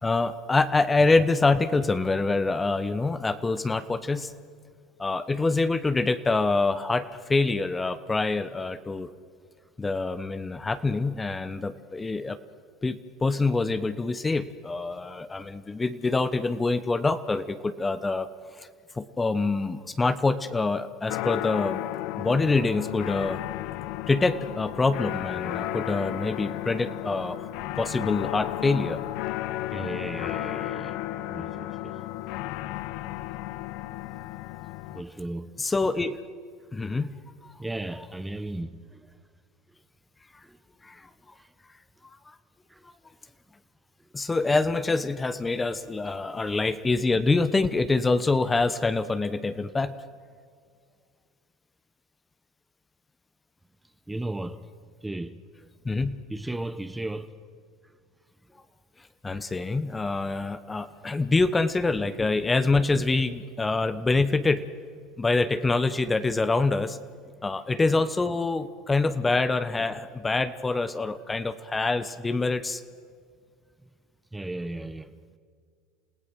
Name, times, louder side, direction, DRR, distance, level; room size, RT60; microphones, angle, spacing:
voice 1, 0.0-4.3 5.0-9.1 9.8-12.4 12.8-18.3 18.6-18.7 18.9-21.8 22.2-23.4 24.1-27.5 27.8-29.0 35.6-36.2 36.7-37.5 40.8-41.1 42.0-42.3 44.1-49.9 55.8-56.2 59.2-64.6 65.2-67.0 67.4-72.8, left 3 dB, 15° left, 1.0 m, -25 dB
sound 1, 21.1-35.0, left 15 dB, 65° left, 0.8 m, -33 dB
voice 2, 29.7-31.0 31.3-32.0 34.9-35.5 37.6-39.2 40.4-40.6 41.4-41.5 42.7-42.8 54.1-54.6 55.0-55.7 56.3-57.3 74.3-75.1, right 2 dB, 10° right, 1.0 m, -35 dB
28.5 x 16.5 x 6.3 m
supercardioid pair, 95°, 0 cm